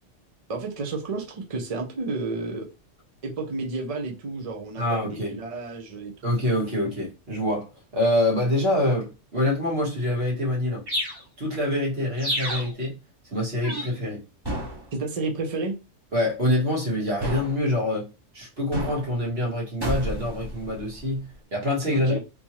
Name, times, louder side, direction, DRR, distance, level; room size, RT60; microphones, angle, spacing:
voice 1, 0.5-2.7 3.2-6.3 14.9-15.7 21.9-22.2, right 3 dB, 40° right, 0.6 m, -31 dB
voice 2, 4.8-5.4 6.2-10.8 11.4-12.9 13.3-14.2 16.1-18.0 18.3-22.2, left 1 dB, 55° right, 1.9 m, -25 dB
sound 1, 10.9-11.2 12.2-12.7 13.6-14.0 14.4-14.9 17.2-17.6 18.7-19.1 19.8-21.0, equal, 20° right, 1.0 m, -30 dB
3.6 x 2.8 x 2.9 m
omnidirectional pair, 1.2 m